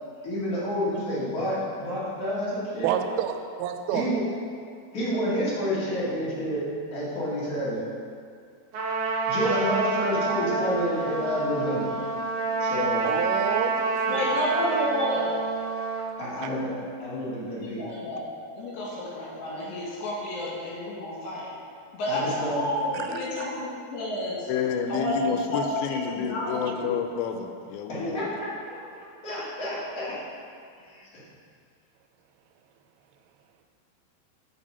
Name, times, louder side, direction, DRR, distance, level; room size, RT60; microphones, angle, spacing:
voice 1, 0.2-2.9 3.9-4.2 4.9-6.6 6.9-7.8 9.3-11.9 12.5-13.0 16.2-17.8 22.1-22.6 27.9-28.8 29.2-30.1 30.8-31.0, equal, 40° left, -9 dB, 1.3 m, -29 dB
voice 2, 2.8-4.1 13.0-13.7 14.1-14.3 22.9-23.4, right 10 dB, 90° right, 6 dB, 2.8 m, -29 dB
Trumpet, 8.7-16.1, right 3 dB, 65° right, 2.0 m, -28 dB
voice 3, 14.1-15.3 17.5-21.5 21.9-24.5 24.9-26.7, equal, 70° left, -6 dB, 3.6 m, -30 dB
voice 4, 24.5-28.3, left 7 dB, 90° left, 6 dB, 2.8 m, -29 dB
6.3 x 6.2 x 5.4 m, 2.3 s
omnidirectional pair, 5.0 m